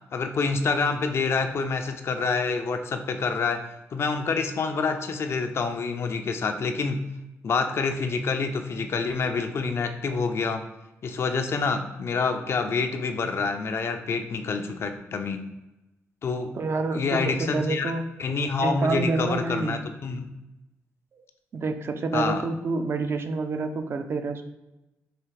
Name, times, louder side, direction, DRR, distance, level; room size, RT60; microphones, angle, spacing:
voice 1, 0.1-7.1 7.4-10.6 11.0-15.4 16.2-16.5 16.9-17.9 18.2-20.3 22.1-22.4, left 4 dB, 50° left, 7 dB, 0.4 m, -27 dB
voice 2, 16.5-18.0 18.6-19.8 21.1-21.2 21.5-24.4, right 3 dB, 45° right, 7 dB, 0.4 m, -28 dB
4.7 x 2.4 x 3.2 m, 0.98 s
cardioid pair, 90°, 5 cm